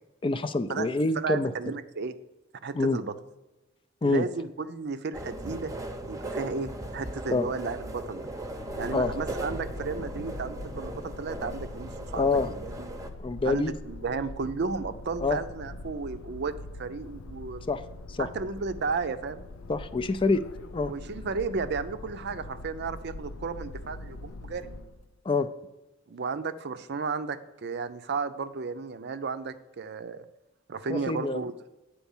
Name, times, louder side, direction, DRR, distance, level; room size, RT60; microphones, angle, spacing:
voice 1, 0.2-1.5 2.7-3.0 4.0-4.3 7.3-7.5 8.9-9.1 12.1-12.5 13.2-13.7 15.2-15.4 17.7-17.8 18.1-18.3 19.7-20.4 20.7-20.9 25.2-25.5 30.9-31.4, left 3 dB, 25° left, 11 dB, 0.4 m, -26 dB
voice 2, 1.2-2.1 2.6-3.1 4.0-5.7 6.1-8.2 8.8-12.9 13.4-17.6 18.2-19.4 20.9-24.7 26.1-30.2 30.7-31.5, right 4 dB, 55° right, 11 dB, 0.5 m, -33 dB
sound 1, 5.1-13.1, right 1 dB, 15° right, 0.8 m, -38 dB
sound 2, 8.1-25.1, left 2 dB, 85° left, 0.6 m, -43 dB
9.2 x 4.5 x 7.1 m, 1.0 s
head